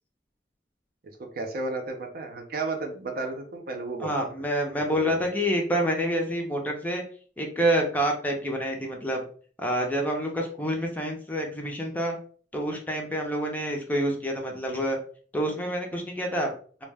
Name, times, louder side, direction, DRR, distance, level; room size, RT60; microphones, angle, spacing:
voice 1, 1.2-4.3 4.9-5.2, right 3 dB, 55° right, 3 dB, 0.6 m, -33 dB
voice 2, 4.0-7.0 7.4-9.2 9.6-12.2 12.5-15.0 15.3-16.5, equal, 10° left, 1 dB, 0.5 m, -27 dB
2.2 x 2.1 x 3.3 m, 0.43 s
head